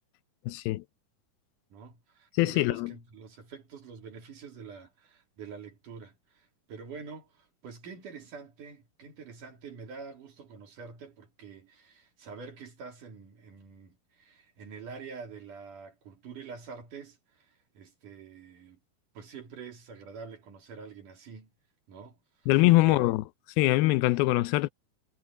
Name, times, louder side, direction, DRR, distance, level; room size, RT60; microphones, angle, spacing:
voice 1, 0.5-0.8 2.3-2.9 22.5-23.2 23.6-24.7, left 19 dB, 85° left, 2.6 m, -23 dB
voice 2, 1.7-18.8 19.1-21.5 21.9-22.2 22.8-23.1, right 5 dB, 60° right, 4.1 m, -46 dB
omnidirectional pair, 4.3 m